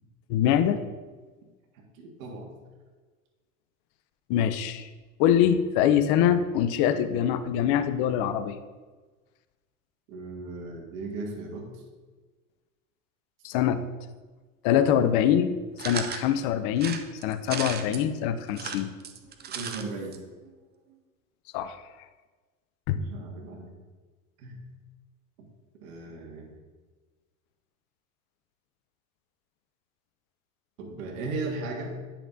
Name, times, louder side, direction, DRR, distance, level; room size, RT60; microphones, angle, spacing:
voice 1, 0.3-0.8 4.3-4.9 5.2-8.6 13.4-13.8 14.6-15.5 15.8-18.9 21.5-21.8 22.9-23.0, left 9 dB, 50° left, 11 dB, 0.7 m, -24 dB
voice 2, 1.7-2.5 10.1-11.7 19.5-20.2 23.0-23.7 24.4-24.6 25.8-26.5 30.8-31.9, right 3 dB, 65° right, 0 dB, 1.9 m, -36 dB
sound 1, 15.8-16.3 16.8-18.0 18.5-19.8 20.1-20.2 20.4-20.5, right 7 dB, 25° right, 0.6 m, -35 dB
10.0 x 5.8 x 2.7 m, 1.3 s
hypercardioid pair, 95°, 44 cm